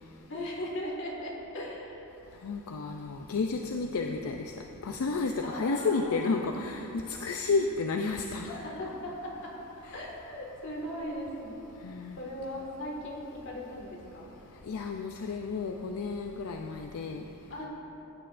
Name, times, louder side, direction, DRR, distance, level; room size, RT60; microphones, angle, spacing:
voice 1, 0.3-2.1 5.4-6.5 8.4-11.6 12.2-14.3 17.5-17.7, left 1 dB, 60° left, -2 dB, 1.8 m, -38 dB
voice 2, 2.4-4.5 4.8-8.6 9.9-10.0 11.8-12.2 14.7-17.2, left 4 dB, 80° left, 3 dB, 0.4 m, -31 dB
15.5 x 8.8 x 2.5 m, 2.9 s
head